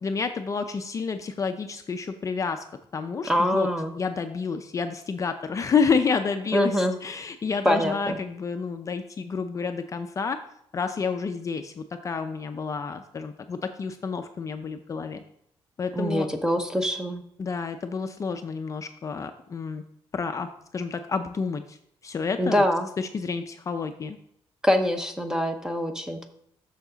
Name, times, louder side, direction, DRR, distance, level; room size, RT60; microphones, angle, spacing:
voice 1, 0.0-2.6 2.9-3.7 3.9-10.4 10.7-15.2 15.8-16.3 17.4-19.8 20.1-21.8 22.0-22.6 23.0-24.2, left 5 dB, 30° left, 7 dB, 0.5 m, -29 dB
voice 2, 3.3-3.9 6.5-6.9 7.6-8.2 15.9-17.2 22.4-22.9 24.6-26.3, equal, 5° right, 6 dB, 0.8 m, -24 dB
7.1 x 6.5 x 3.9 m, 0.71 s
cardioid pair, 130°, 10 cm